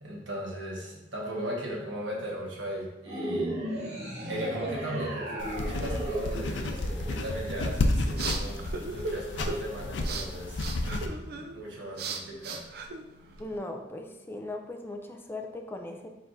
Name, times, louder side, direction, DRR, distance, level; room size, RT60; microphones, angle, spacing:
voice 1, 0.0-3.5 4.3-12.6, right 1 dB, 85° right, -3 dB, 1.3 m, -37 dB
sound 1, 3.0-7.6, right 1 dB, 40° right, 1.1 m, -35 dB
sound 2, 5.4-11.1, left 2 dB, 80° left, 0.5 m, -31 dB
sound 3, 7.8-13.6, right 3 dB, 55° right, 0.4 m, -38 dB
voice 2, 13.4-16.1, left 2 dB, 10° left, 3 dB, 0.4 m, -38 dB
4.4 x 4.3 x 2.6 m, 1.0 s
head